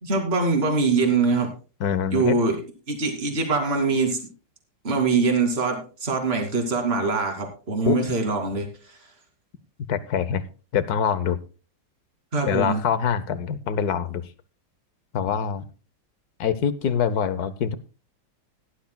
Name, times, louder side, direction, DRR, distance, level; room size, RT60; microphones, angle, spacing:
voice 1, 0.0-1.5 2.1-2.6 2.9-4.2 4.8-9.0 12.3-12.8, right 4 dB, 30° right, 3 dB, 2.7 m, -23 dB
voice 2, 1.8-2.4 7.9-8.0 9.9-10.4 10.7-11.4 12.5-14.3 15.1-15.6 16.4-17.8, left 7 dB, 60° left, 13 dB, 1.2 m, -24 dB
17.5 x 11.5 x 2.2 m, 0.34 s
omnidirectional pair, 2.1 m